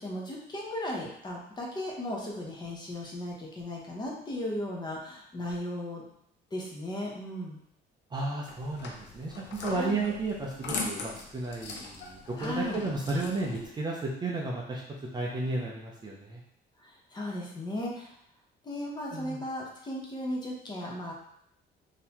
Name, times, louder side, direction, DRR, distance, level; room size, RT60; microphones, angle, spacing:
voice 1, 0.0-6.0 6.5-7.6 9.7-10.0 12.4-12.8 16.8-18.2 18.6-21.1, left 1 dB, 25° left, -2 dB, 0.8 m, -36 dB
voice 2, 8.1-14.8 15.1-16.4 19.1-19.4, right 2 dB, 25° right, -2 dB, 0.5 m, -33 dB
sound 1, 8.5-13.6, left 3 dB, 70° left, 0.7 m, -40 dB
3.7 x 2.7 x 2.9 m, 0.70 s
cardioid pair, 150°, 19 cm